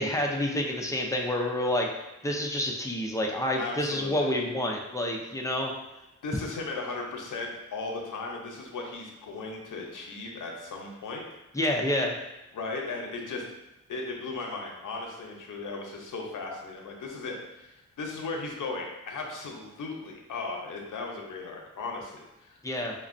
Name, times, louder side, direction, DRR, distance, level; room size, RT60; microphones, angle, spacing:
voice 1, 0.0-1.9 2.2-5.7 11.5-12.1 22.6-22.9, left 1 dB, 10° left, 0 dB, 0.5 m, -28 dB
voice 2, 3.6-4.3 6.2-11.2 12.5-13.4 13.9-22.6, left 3 dB, 85° left, 0 dB, 0.7 m, -36 dB
5.1 x 2.1 x 2.5 m, 0.96 s
wide cardioid pair, 85°, 31 cm